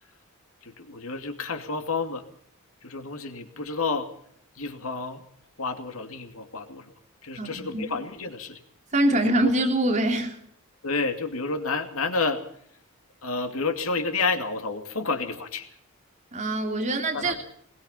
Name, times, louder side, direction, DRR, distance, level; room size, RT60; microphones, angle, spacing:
voice 1, 0.6-2.2 2.8-4.1 4.6-5.2 5.6-6.9 7.2-8.6 9.1-9.3 10.8-12.4 13.2-15.7 17.1-17.4, left 4 dB, 70° left, 6 dB, 2.6 m, -30 dB
voice 2, 7.4-7.8 8.9-10.4 16.3-17.4, right 1 dB, 35° right, 4 dB, 3.2 m, -24 dB
22.0 x 21.5 x 5.6 m, 0.62 s
head